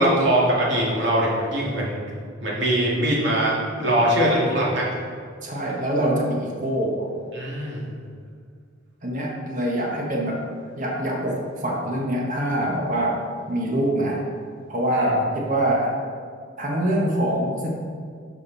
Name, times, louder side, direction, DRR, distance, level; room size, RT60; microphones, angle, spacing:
voice 1, 0.0-2.0 2.4-4.8 7.3-7.8, right 1 dB, 60° right, -5 dB, 2.3 m, -21 dB
voice 2, 5.4-7.1 9.0-10.5 10.8-13.2 13.5-14.2 14.7-16.0 16.6-17.7, right 1 dB, 40° right, -2 dB, 1.3 m, -24 dB
11.0 x 5.3 x 4.1 m, 2.1 s
head